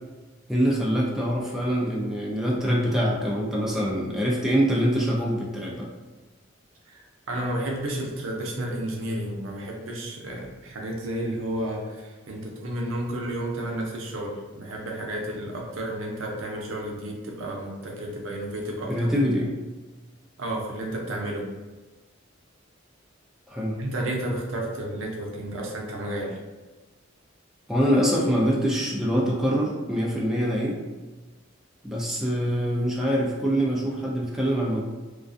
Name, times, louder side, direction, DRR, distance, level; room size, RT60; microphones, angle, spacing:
voice 1, 0.5-5.9 18.9-19.5 23.5-23.8 27.7-30.8 31.8-34.8, equal, ahead, -4 dB, 0.3 m, -24 dB
voice 2, 6.9-19.1 20.4-21.4 23.8-26.4, right 1 dB, 90° right, -1 dB, 0.6 m, -32 dB
2.3 x 2.3 x 2.5 m, 1.2 s
head